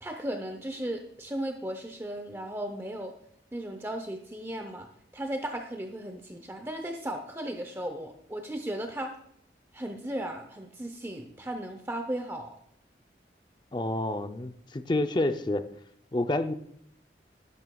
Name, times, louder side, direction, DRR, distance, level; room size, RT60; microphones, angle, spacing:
voice 1, 0.0-3.1 3.5-4.9 5.1-9.1 9.7-12.6, right 1 dB, 15° right, 5 dB, 0.7 m, -36 dB
voice 2, 13.7-15.6 16.1-16.5, left 2 dB, 25° left, 9 dB, 0.5 m, -28 dB
12.5 x 11.0 x 2.3 m, 0.69 s
head